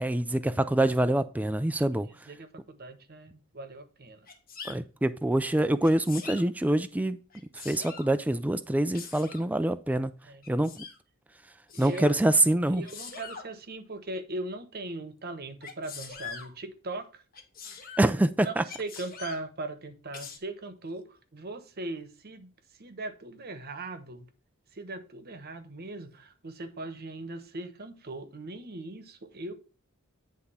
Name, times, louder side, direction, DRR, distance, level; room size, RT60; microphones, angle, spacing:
voice 1, 0.0-2.1 4.7-7.2 7.6-10.1 10.5-10.8 11.8-12.8 18.0-18.6, right 1 dB, 5° right, 0.3 m, -25 dB
voice 2, 1.9-4.3 10.2-10.4 11.7-12.1 12.7-17.2 17.8-18.0 18.4-24.3 24.7-29.5, right 2 dB, 45° right, 1.0 m, -39 dB
Sneeze, 4.3-4.8 5.8-6.4 7.3-8.1 8.9-9.5 10.4-11.0 11.7-12.2 12.8-13.5 15.6-16.5 17.3-18.1 18.6-19.4 20.1-20.4, left 6 dB, 40° left, 1.5 m, -43 dB
9.8 x 3.6 x 5.6 m
head